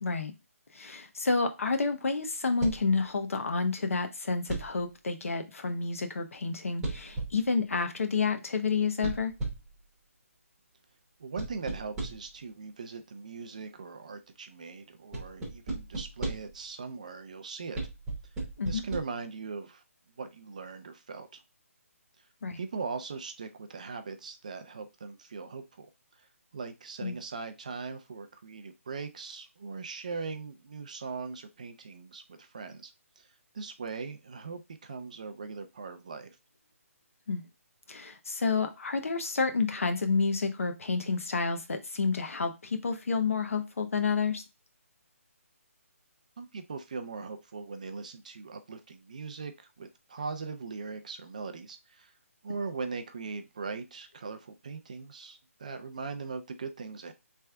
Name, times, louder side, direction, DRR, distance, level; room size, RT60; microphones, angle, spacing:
voice 1, 0.0-0.3 0.7-9.3 18.6-18.8 22.4-22.6 27.0-27.2 37.3-37.4 37.9-44.4, left 4 dB, 65° left, 6 dB, 0.8 m, -29 dB
sound 1, 2.6-3.0 4.5-4.9 6.8-7.5 9.0-9.8 11.4-12.4 15.1-16.6 17.8-19.0, right 2 dB, 5° right, 0.8 m, -36 dB
voice 2, 11.2-17.8 18.6-19.8 20.2-21.4 22.6-25.9 26.2-26.3 26.5-36.4 46.4-52.1 52.4-57.1, right 4 dB, 30° right, 8 dB, 0.4 m, -40 dB
3.3 x 3.3 x 3.4 m, 0.25 s
hypercardioid pair, 175°, 8 cm